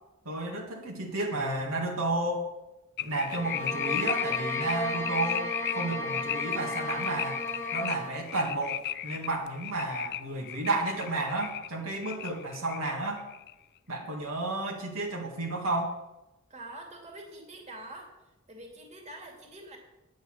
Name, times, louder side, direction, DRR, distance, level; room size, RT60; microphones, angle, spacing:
voice 1, 0.3-2.5 3.0-5.5 5.7-7.4 7.7-13.3 13.9-16.0, right 2 dB, 75° right, 0 dB, 1.9 m, -32 dB
sound 1, 3.0-11.7 12.0-13.5, left 12 dB, 50° left, 0.4 m, -35 dB
sound 2, 3.3-8.2, left 1 dB, 15° left, 1.2 m, -34 dB
voice 2, 16.5-18.1 18.5-19.8, right 1 dB, 35° right, 1 dB, 2.3 m, -45 dB
9.5 x 8.1 x 6.4 m, 0.97 s
head